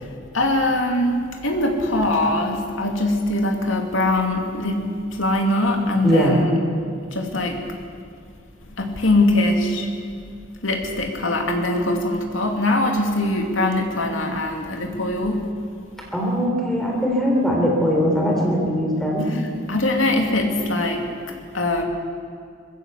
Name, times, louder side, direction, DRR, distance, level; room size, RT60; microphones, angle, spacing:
voice 1, 0.3-6.4 7.1-7.6 8.8-9.9 10.6-15.5 19.3-19.4 19.7-21.0 21.5-21.8, left 1 dB, 85° left, 2 dB, 2.6 m, -22 dB
voice 2, 6.0-6.4 16.1-19.3, equal, ahead, -2 dB, 3.6 m, -20 dB
21.5 x 16.0 x 8.2 m, 2.3 s
head